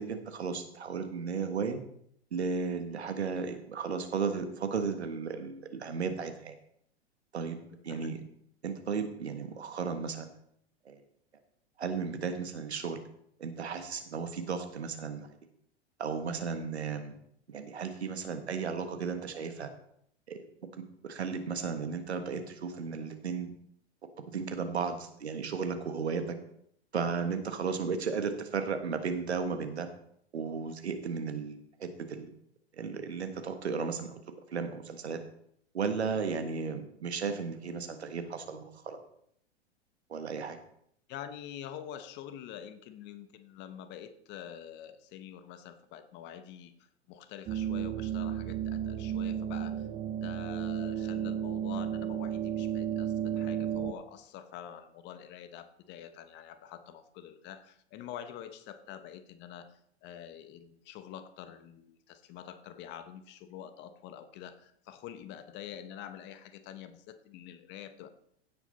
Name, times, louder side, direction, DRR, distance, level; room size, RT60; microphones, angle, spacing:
voice 1, 0.0-1.8 2.3-6.6 7.3-7.6 7.8-8.2 8.6-10.3 10.8-11.0 11.8-13.0 13.4-15.3 16.0-17.1 17.5-19.7 20.3-20.4 21.0-23.5 24.3-26.4 26.9-29.9 30.3-32.3 32.8-34.2 34.5-35.2 35.7-39.0 40.1-40.6, right 5 dB, 75° right, 8 dB, 1.6 m, -34 dB
voice 2, 7.7-8.3 41.1-49.9 50.2-68.1, left 10 dB, 35° left, 11 dB, 1.1 m, -46 dB
sound 1, 47.5-53.9, right 9 dB, 25° right, 0.9 m, -33 dB
16.0 x 6.2 x 4.1 m, 0.69 s
figure-of-eight pair, 100°, 33 cm